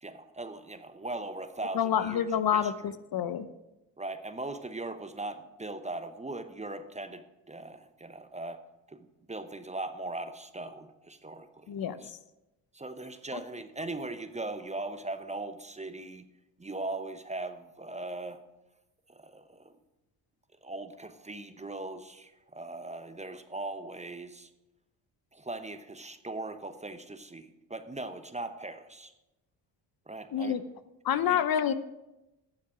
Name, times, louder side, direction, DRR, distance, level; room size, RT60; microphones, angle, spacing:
voice 1, 0.0-2.7 4.0-8.6 8.9-12.1 12.7-16.3 16.6-18.4 19.1-19.7 20.6-24.5 25.3-29.1 30.1-30.6 31.3-31.4, right 2 dB, 15° right, 10 dB, 0.8 m, -39 dB
voice 2, 1.7-3.5 11.7-12.2 30.3-30.6 31.0-31.7, left 9 dB, 50° left, 12 dB, 0.7 m, -28 dB
11.5 x 7.1 x 4.9 m, 0.97 s
supercardioid pair, 65°, 45 cm